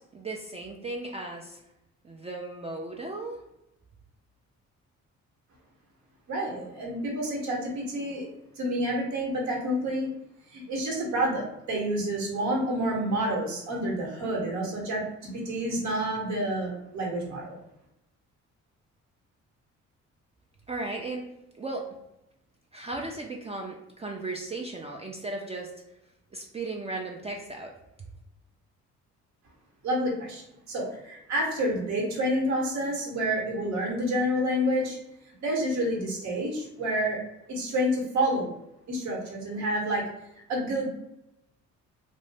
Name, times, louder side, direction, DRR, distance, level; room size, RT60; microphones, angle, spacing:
voice 1, 0.1-1.6 2.0-3.4 20.7-21.3 21.6-21.9 22.7-25.7 26.3-27.7, right 2 dB, 20° right, 0 dB, 0.4 m, -36 dB
voice 2, 6.3-8.3 8.6-10.1 10.5-17.6 29.8-30.4 30.7-35.0 35.4-37.2 37.5-38.5 38.9-40.1 40.5-40.9, right 1 dB, 65° right, -2 dB, 1.0 m, -28 dB
2.6 x 2.1 x 3.2 m, 0.86 s
cardioid pair, 90°, 30 cm